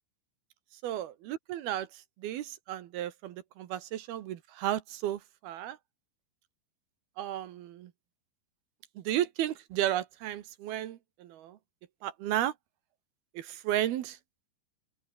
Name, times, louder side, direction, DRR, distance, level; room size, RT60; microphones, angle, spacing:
voice 1, 0.8-5.8 7.2-7.9 9.0-11.6 12.0-12.5 13.3-14.2, right 12 dB, 70° right, 3.0 m, -33 dB
open air
omnidirectional pair, 5.0 m